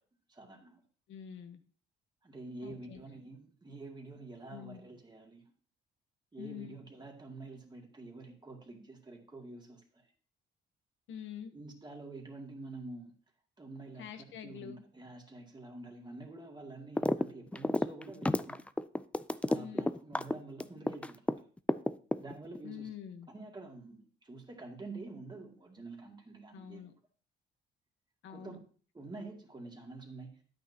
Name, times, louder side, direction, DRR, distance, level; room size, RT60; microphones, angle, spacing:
voice 1, 0.3-0.8 2.2-5.4 6.3-10.1 11.5-13.2 13.6-18.6 19.5-21.5 22.2-22.9 23.3-26.8 28.3-28.5 28.9-30.4, right 2 dB, 20° right, 2 dB, 2.2 m, -48 dB
voice 2, 1.1-1.6 2.6-3.0 4.5-4.8 6.4-6.8 11.1-11.5 14.0-14.8 19.5-19.9 22.6-23.3 26.5-26.9 28.2-28.6, left 9 dB, 75° left, 7 dB, 1.0 m, -46 dB
sound 1, 17.0-17.3 17.5-21.3 21.7-22.6, left 1 dB, 5° left, 0.3 m, -30 dB
10.5 x 8.9 x 2.9 m, 0.42 s
cardioid pair, 90°, 20 cm